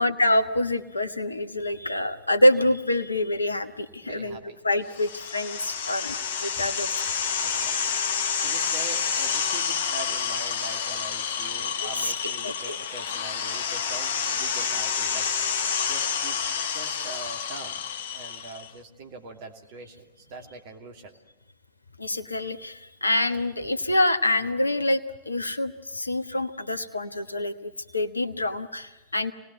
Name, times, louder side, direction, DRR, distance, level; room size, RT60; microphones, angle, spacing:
voice 1, 0.0-6.9 11.8-12.8 22.0-29.3, left 1 dB, 80° left, 12 dB, 1.1 m, -26 dB
voice 2, 4.0-4.6 6.5-6.7 7.4-8.0 8.4-15.3 15.9-17.8 18.1-21.1 23.6-23.7, right 4 dB, 50° right, 3 dB, 2.7 m, -43 dB
sound 1, 4.9-18.7, left 6 dB, 60° left, 1.0 m, -29 dB
26.5 x 19.5 x 9.1 m, 0.99 s
figure-of-eight pair, 90°, 0 cm